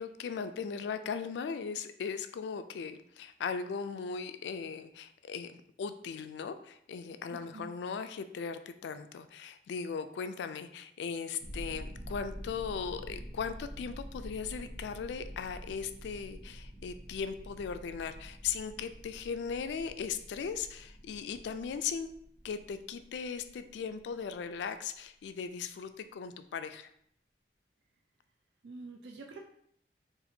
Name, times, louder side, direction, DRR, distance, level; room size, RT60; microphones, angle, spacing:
voice 1, 0.0-22.1 22.4-26.9, left 6 dB, 75° left, 10 dB, 0.3 m, -38 dB
voice 2, 7.3-7.7 28.6-29.4, right 3 dB, 75° right, 2 dB, 0.4 m, -46 dB
sound 1, 11.4-24.5, equal, 40° right, 0.7 m, -47 dB
4.1 x 2.5 x 2.7 m, 0.69 s
head